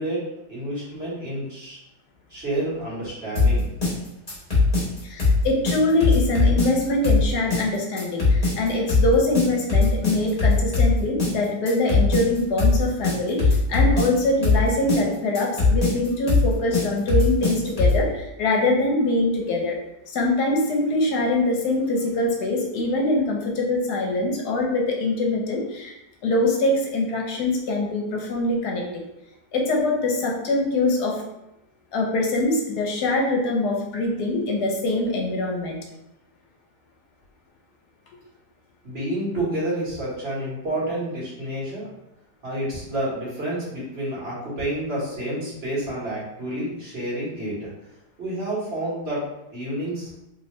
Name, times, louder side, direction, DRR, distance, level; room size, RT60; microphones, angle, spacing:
voice 1, 0.0-1.8 2.3-3.7 38.8-41.9 42.4-47.7 48.2-49.2 49.5-50.1, right 1 dB, 40° right, -7 dB, 1.7 m, -29 dB
sound 1, 3.4-18.1, left 3 dB, 25° left, 1.3 m, -20 dB
voice 2, 5.0-19.8 20.1-25.9 26.2-28.8 29.5-31.2 31.9-35.8, left 2 dB, 75° left, 0 dB, 1.2 m, -23 dB
3.3 x 2.8 x 3.1 m, 0.88 s
omnidirectional pair, 1.8 m